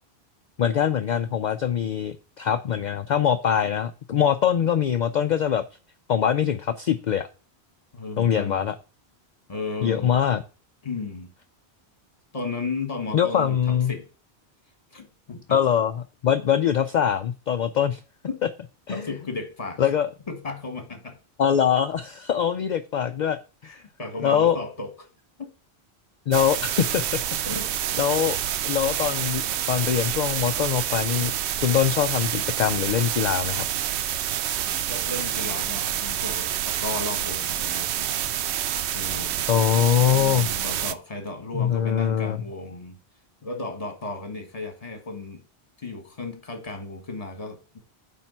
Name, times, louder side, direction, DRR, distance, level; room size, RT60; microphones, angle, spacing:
voice 1, 0.6-5.6 6.1-7.3 8.2-8.7 9.8-10.4 13.1-13.9 15.5-18.0 18.9-19.1 19.8-20.1 21.4-23.4 24.2-24.6 26.3-27.2 28.0-28.4 28.6-31.3 31.6-33.7 39.5-40.5 41.5-42.4, left 9 dB, 55° left, 0.5 m, -23 dB
voice 2, 7.9-8.7 9.5-10.2 10.8-11.3 12.3-14.0 14.9-15.6 18.3-18.4 18.9-19.8 20.3-21.2 23.6-25.1 25.4-25.5 27.4-27.7 34.6-37.9 38.9-39.4 39.9-43.0 43.4-45.4 45.8-47.8, left 3 dB, 35° left, 1.6 m, -34 dB
sound 1, 26.3-40.9, right 11 dB, 85° right, 0.8 m, -28 dB
8.8 x 3.6 x 5.5 m
omnidirectional pair, 1.1 m